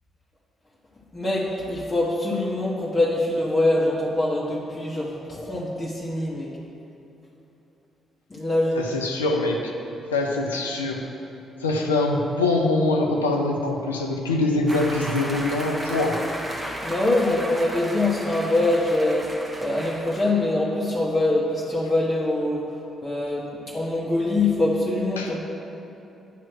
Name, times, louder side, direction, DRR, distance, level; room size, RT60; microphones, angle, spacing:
voice 1, 1.1-6.5 8.3-8.8 16.8-19.3 19.6-22.7 23.0-25.4, left 2 dB, 25° left, -6 dB, 1.1 m, -24 dB
voice 2, 8.8-9.7 10.1-11.1 11.6-16.3 25.2-25.4, left 2 dB, 85° left, 1 dB, 0.5 m, -24 dB
sound 1, 14.7-20.3, right 1 dB, 20° right, 1.2 m, -34 dB
9.1 x 3.1 x 6.2 m, 3.0 s
figure-of-eight pair, 40°, 0 cm